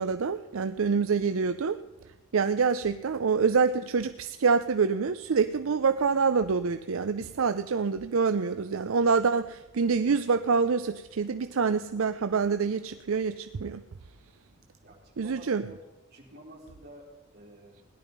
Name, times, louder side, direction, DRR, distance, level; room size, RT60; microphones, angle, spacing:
voice 1, 0.0-1.8 2.3-13.8 15.2-15.7, right 5 dB, 75° right, 10 dB, 0.5 m, -26 dB
voice 2, 14.8-15.8 16.1-17.8, right 1 dB, 50° right, -1 dB, 3.6 m, -50 dB
17.5 x 11.0 x 5.3 m, 1.1 s
head